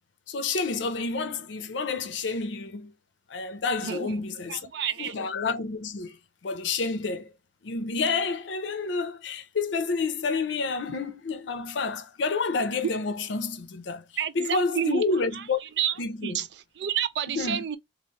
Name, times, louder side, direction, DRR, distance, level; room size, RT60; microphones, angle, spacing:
voice 1, 0.3-2.9 3.3-4.7 5.0-6.2 6.4-7.3 7.6-14.0 14.3-15.6 16.0-16.4 17.3-17.6, left 4 dB, 90° left, 0.5 m, -29 dB
voice 2, 4.5-5.1 14.2-15.0 15.8-15.9 16.2-16.5 16.8-17.8, right 9 dB, 65° right, 0.4 m, -29 dB
2.9 x 2.5 x 3.0 m
head